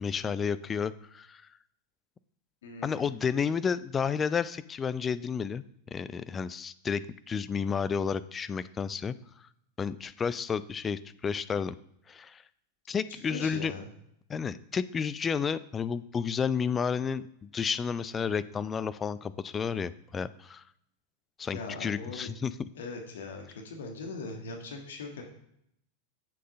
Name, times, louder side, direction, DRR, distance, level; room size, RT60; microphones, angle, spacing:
voice 1, 0.0-1.4 2.8-9.1 9.8-11.8 12.1-12.4 12.9-13.7 14.3-20.6 21.4-22.5, left 6 dB, 20° left, 14 dB, 0.4 m, -31 dB
voice 2, 2.6-3.2 13.1-13.9 21.5-22.3 22.7-25.2, left 3 dB, 60° left, 2 dB, 1.7 m, -40 dB
7.7 x 6.5 x 5.3 m, 0.75 s
figure-of-eight pair, 90°, 0 cm